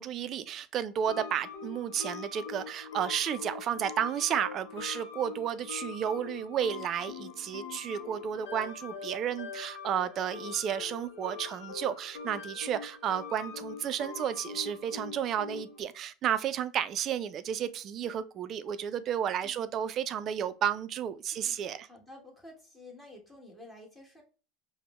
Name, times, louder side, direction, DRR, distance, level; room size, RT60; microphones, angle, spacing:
voice 1, 0.0-21.9, right 9 dB, 45° right, 0.3 m, -32 dB
sound 1, 1.1-15.8, left 5 dB, 85° left, 0.5 m, -43 dB
voice 2, 21.3-24.2, left 1 dB, 10° left, 1.3 m, -51 dB
5.0 x 2.1 x 2.3 m
supercardioid pair, 105°, 0 cm